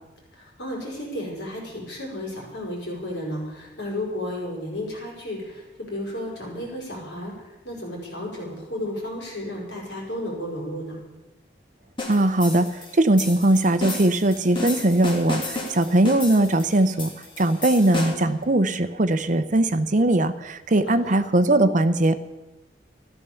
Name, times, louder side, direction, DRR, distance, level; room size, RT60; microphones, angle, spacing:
voice 1, 0.3-11.0 20.9-21.1, left 1 dB, 70° left, -2 dB, 6.1 m, -33 dB
sound 1, 12.0-18.4, left 2 dB, 30° left, 2.8 m, -33 dB
voice 2, 12.1-12.7 12.9-17.1 17.4-22.1, right 1 dB, 45° right, 11 dB, 0.8 m, -20 dB
14.5 x 12.5 x 7.0 m, 1.1 s
head